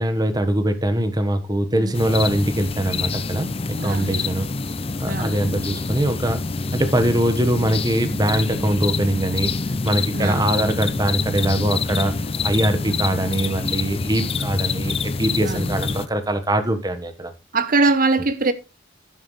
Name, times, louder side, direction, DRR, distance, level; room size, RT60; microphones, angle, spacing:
voice 1, 0.0-4.5 5.0-6.4 6.7-9.5 9.8-12.1 12.4-17.3, right 1 dB, 20° right, 1.3 m, -22 dB
sound 1, 1.9-16.1, left 4 dB, 30° left, 0.6 m, -26 dB
voice 2, 3.8-4.4 5.0-5.6 10.1-10.5 12.8-13.0 15.4-15.8 17.5-18.5, right 3 dB, 45° right, 0.9 m, -23 dB
11.5 x 9.8 x 3.2 m
head